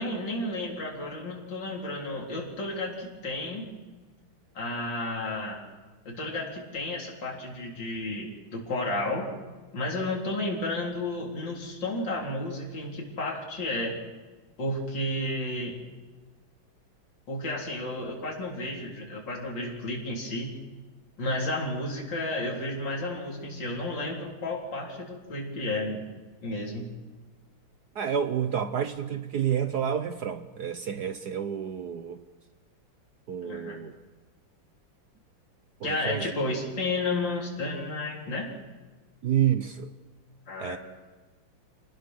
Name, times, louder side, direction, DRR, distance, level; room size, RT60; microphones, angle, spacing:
voice 1, 0.0-3.7 4.5-5.6 6.1-9.3 9.7-14.0 14.6-15.8 17.3-20.5 21.2-26.0 26.4-26.9 33.4-33.8 35.8-38.5 40.5-40.8, left 2 dB, 65° left, -2 dB, 4.5 m, -32 dB
voice 2, 27.9-32.2 33.3-33.9 35.8-36.3 39.2-39.9 40.6-40.8, right 9 dB, 60° right, 10 dB, 1.3 m, -29 dB
28.0 x 19.5 x 6.3 m, 1.3 s
omnidirectional pair, 2.2 m